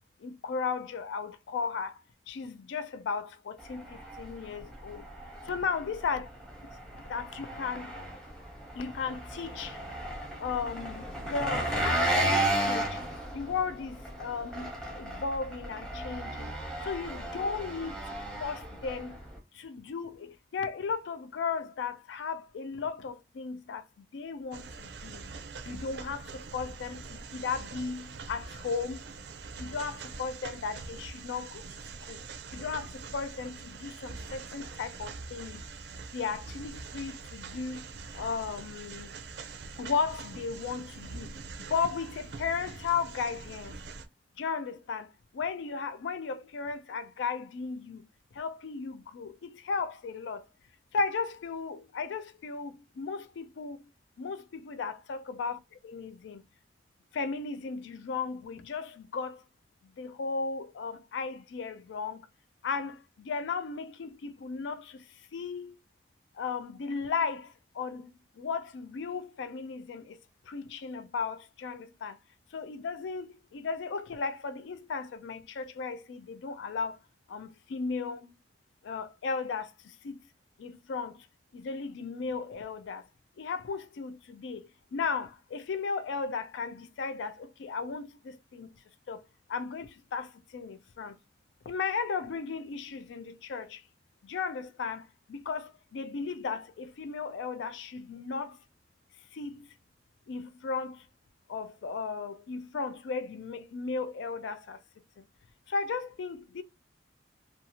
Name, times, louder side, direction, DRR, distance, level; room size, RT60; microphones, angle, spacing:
voice 1, 0.2-1.9 2.3-5.0 5.5-6.3 7.1-7.9 8.8-9.8 10.4-13.0 13.3-16.5 16.8-18.0 18.4-19.1 19.6-23.8 24.1-25.2 25.7-29.0 29.6-31.6 32.1-32.2 32.5-35.6 36.1-37.8 38.1-39.1 39.8-41.3 41.7-43.7 44.4-45.1 45.3-48.0 48.4-50.4 50.9-53.8 54.2-56.4 57.1-59.4 60.0-62.2 62.6-65.0 65.3-65.7 66.4-67.5 67.8-68.1 68.4-70.2 70.5-72.2 72.5-77.0 77.3-78.3 78.8-79.7 80.0-80.2 80.6-81.2 81.5-83.0 83.4-84.6 84.9-88.7 89.1-89.2 89.5-91.1 91.7-93.8 94.3-95.0 95.3-98.6 99.3-99.6 100.3-101.0 101.5-104.8 105.7-106.6, left 5 dB, 80° left, 0.4 m, -35 dB
Engine, 3.6-19.4, right 1 dB, 5° left, 0.7 m, -34 dB
sound 1, 24.5-44.1, right 4 dB, 65° right, 0.4 m, -44 dB
2.6 x 2.3 x 2.8 m
head